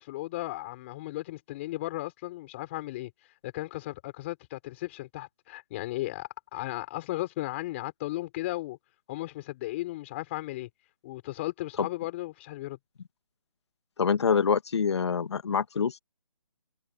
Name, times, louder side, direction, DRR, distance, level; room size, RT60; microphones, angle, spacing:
voice 1, 0.0-3.1 3.4-8.8 9.1-10.7 11.0-12.8, left 17 dB, 20° left, 6.6 m, -35 dB
voice 2, 14.0-16.0, left 6 dB, 50° left, 2.2 m, -25 dB
hypercardioid pair, 165°, 18 cm